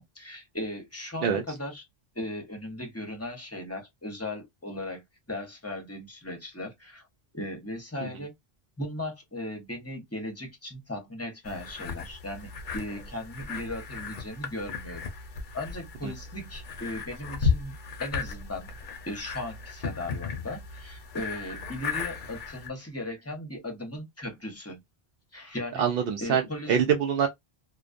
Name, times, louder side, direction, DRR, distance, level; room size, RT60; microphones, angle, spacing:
voice 1, 0.0-1.8 2.1-7.0 7.3-8.3 8.8-15.0 15.5-18.7 19.0-24.8 25.3-25.8 26.2-26.8, left 1 dB, 15° left, 0.7 m, -37 dB
sound 1, 11.4-22.7, left 5 dB, 60° left, 0.6 m, -35 dB
voice 2, 25.8-26.4 26.7-27.3, right 7 dB, 70° right, 0.8 m, -24 dB
2.3 x 2.2 x 2.4 m
omnidirectional pair, 1.0 m